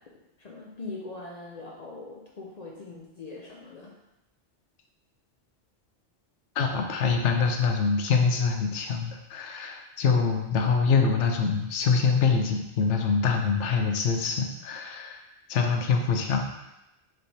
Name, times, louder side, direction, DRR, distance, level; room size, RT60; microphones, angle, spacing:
voice 1, 0.4-3.9, left 3 dB, 50° left, -3 dB, 0.5 m, -41 dB
voice 2, 6.6-15.2 15.5-16.5, left 5 dB, 80° left, 3 dB, 0.9 m, -25 dB
4.4 x 3.2 x 2.7 m, 0.93 s
omnidirectional pair, 1.2 m